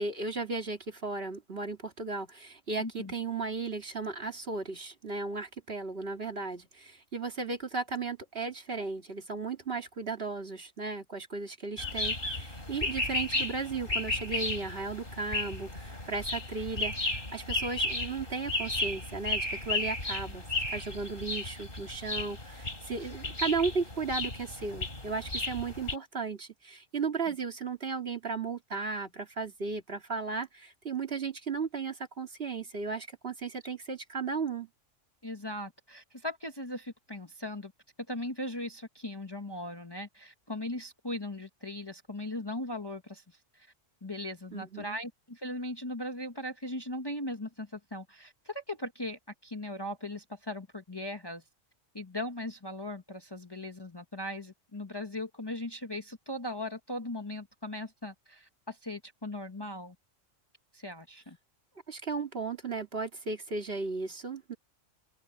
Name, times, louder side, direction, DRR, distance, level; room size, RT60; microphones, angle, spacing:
voice 1, 0.0-34.7 44.5-45.0 61.9-64.6, right 4 dB, 50° right, 2.5 m, -35 dB
voice 2, 2.8-3.1 35.2-37.7 38.1-43.2 43.5-43.7 44.0-51.4 51.9-59.9 60.7-61.4, left 1 dB, 20° left, 1.2 m, -38 dB
sound 1, 11.8-26.0, left 2 dB, 45° left, 4.5 m, -34 dB
open air
omnidirectional pair, 1.3 m